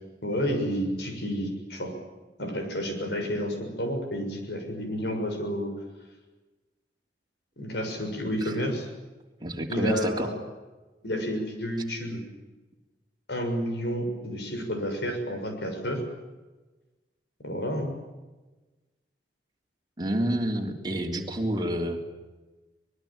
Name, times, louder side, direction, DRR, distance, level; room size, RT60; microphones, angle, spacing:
voice 1, 0.2-1.9 2.4-5.7 7.6-8.9 9.7-10.3 11.0-12.2 13.3-16.0 17.4-17.9, equal, 70° left, 5 dB, 6.7 m, -30 dB
voice 2, 9.4-10.3 20.0-22.0, right 1 dB, 25° right, 1 dB, 3.3 m, -29 dB
24.0 x 21.5 x 8.9 m, 1.2 s
head